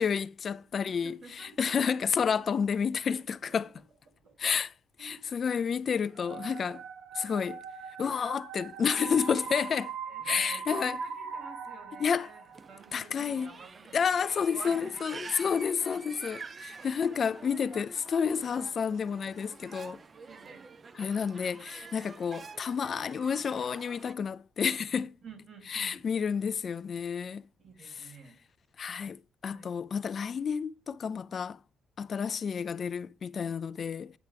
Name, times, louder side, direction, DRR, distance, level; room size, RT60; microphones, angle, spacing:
voice 1, 0.0-3.7 4.4-4.7 5.0-6.8 7.1-7.6 8.0-9.9 10.2-11.0 12.0-12.3 12.9-13.5 13.9-20.0 21.0-25.1 25.7-27.4 28.8-31.6 32.0-34.1, left 6 dB, 50° left, 0.4 m, -30 dB
voice 2, 0.8-1.9 2.4-2.5 3.5-3.6 4.2-4.4 5.0-5.3 10.1-15.6 19.4-19.6 20.2-20.7 25.0-26.1 27.6-28.4 29.5-29.7, right 4 dB, 55° right, 2.8 m, -50 dB
sound 1, 6.1-13.0, right 6 dB, 85° right, 1.1 m, -41 dB
sound 2, 12.5-24.1, right 4 dB, 35° right, 0.4 m, -48 dB
9.4 x 5.7 x 3.4 m
cardioid pair, 90°, 0 cm